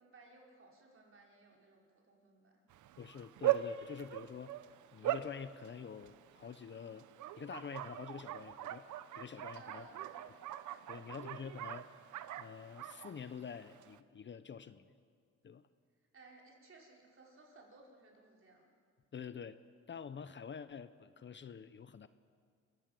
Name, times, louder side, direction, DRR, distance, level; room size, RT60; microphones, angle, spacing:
voice 1, 0.0-2.6 9.5-10.5 10.9-11.1 16.0-18.7, right 2 dB, 45° right, -1 dB, 5.3 m, -60 dB
Bark, 2.7-14.0, right 13 dB, 80° right, 0.9 m, -41 dB
voice 2, 3.0-4.5 4.9-7.1 7.4-8.8 9.1-9.9 10.9-11.9 12.4-14.9 15.4-15.6 19.1-19.6 19.9-22.1, left 7 dB, 40° left, 13 dB, 0.8 m, -47 dB
27.0 x 16.0 x 7.7 m, 2.1 s
cardioid pair, 90°, 30 cm